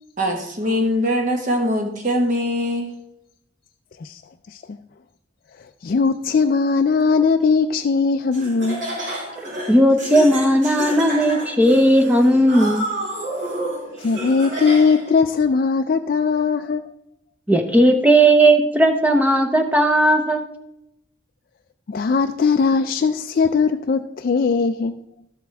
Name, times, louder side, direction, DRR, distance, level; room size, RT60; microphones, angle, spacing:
voice 1, 0.2-2.9, equal, 40° right, 1.5 m, -22 dB
voice 2, 5.8-9.0 14.0-16.9 21.9-25.0, left 5 dB, 45° left, 0.3 m, -19 dB
Laughter, 8.3-15.1, right 1 dB, 70° right, 4.1 m, -30 dB
voice 3, 9.7-12.9 17.5-20.4, right 1 dB, 10° right, 0.7 m, -16 dB
12.5 x 7.6 x 3.4 m
head